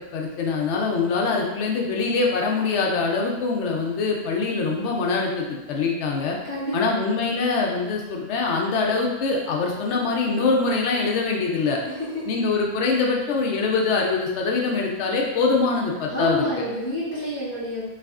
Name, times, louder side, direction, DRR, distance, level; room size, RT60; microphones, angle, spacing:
voice 1, 0.1-6.4 6.7-11.8 12.3-16.6, left 4 dB, 70° left, 0 dB, 0.8 m, -23 dB
voice 2, 16.1-17.8, left 1 dB, 15° left, -12 dB, 0.6 m, -28 dB
3.3 x 2.4 x 2.4 m, 1.0 s
omnidirectional pair, 1.2 m